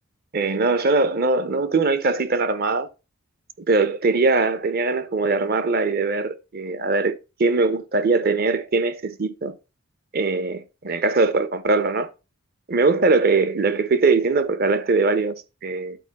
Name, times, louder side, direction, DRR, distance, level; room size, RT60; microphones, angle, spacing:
voice 1, 0.3-2.9 3.7-7.1 7.4-9.5 10.1-12.1 12.7-15.3 15.6-16.0, right 3 dB, 45° right, 0.6 m, -21 dB
11.0 x 4.4 x 4.1 m
head